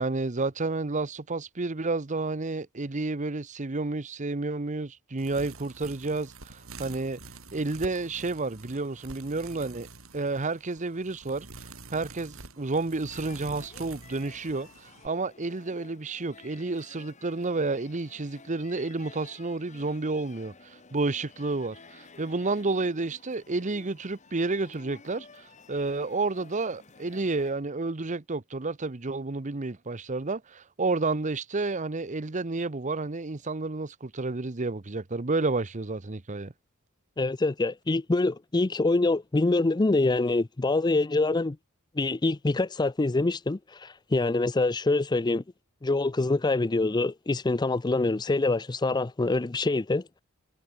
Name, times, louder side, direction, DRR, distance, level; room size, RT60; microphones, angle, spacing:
voice 1, 0.0-7.2 7.5-9.9 10.1-11.5 11.9-36.5, right 3 dB, 35° right, 0.9 m, -30 dB
sound 1, 5.2-15.1, right 3 dB, 75° right, 6.7 m, -47 dB
sound 2, 13.1-27.5, left 4 dB, 35° left, 2.3 m, -52 dB
voice 2, 37.2-41.6 42.0-45.4 45.8-50.0, left 2 dB, 20° left, 0.5 m, -25 dB
head